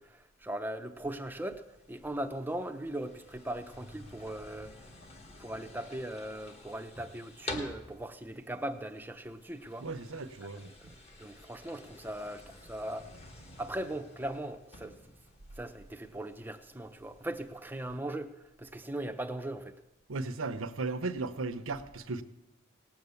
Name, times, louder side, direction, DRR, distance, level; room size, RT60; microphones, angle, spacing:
voice 1, 0.0-1.6 1.9-4.7 5.4-9.9 10.8-13.1 13.6-15.0 15.6-18.3 18.6-19.7, right 1 dB, 10° right, 0.7 m, -39 dB
sound 1, 1.0-18.0, left 1 dB, 30° left, 1.4 m, -50 dB
voice 2, 9.8-10.9 20.1-22.2, right 3 dB, 80° right, 0.8 m, -36 dB
18.0 x 8.0 x 7.0 m
head